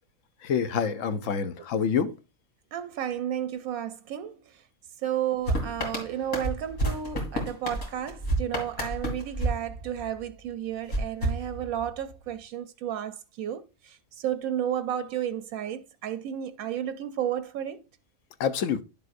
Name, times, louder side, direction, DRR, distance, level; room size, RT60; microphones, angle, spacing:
voice 1, 0.4-2.1 18.4-18.8, left 7 dB, 70° left, 1.1 m, -27 dB
voice 2, 1.1-1.5 2.7-4.6 5.0-17.8, right 10 dB, 85° right, 1.1 m, -32 dB
sound 1, 5.5-10.3 10.9-12.1, right 1 dB, 90° left, 3.0 m, -31 dB
11.0 x 7.0 x 2.5 m
omnidirectional pair, 1.5 m